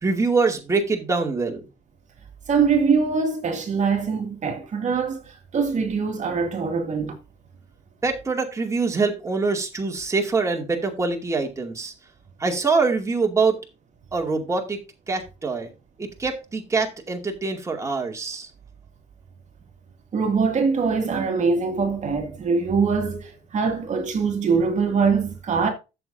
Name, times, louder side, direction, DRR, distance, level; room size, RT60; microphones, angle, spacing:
voice 1, 0.0-1.7 8.0-11.9 12.4-13.6 14.1-14.8 15.1-15.7 16.0-18.5, right 4 dB, 15° right, 2.4 m, -24 dB
voice 2, 2.5-7.2 20.1-25.7, right 5 dB, 45° right, 2.3 m, -23 dB
13.5 x 7.2 x 2.7 m
cardioid pair, 110°, 17 cm